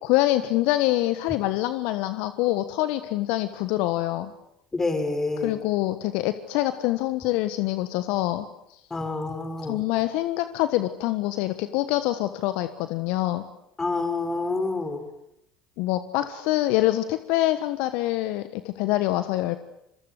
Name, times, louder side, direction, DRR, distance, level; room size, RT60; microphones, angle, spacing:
voice 1, 0.0-4.3 5.4-8.5 9.6-13.4 15.8-19.6, left 16 dB, 65° left, 11 dB, 1.3 m, -25 dB
voice 2, 4.7-5.6 8.9-9.8 13.8-15.0, left 3 dB, 20° left, 7 dB, 6.4 m, -27 dB
26.5 x 23.5 x 8.2 m, 0.79 s
hypercardioid pair, 65°, 2 cm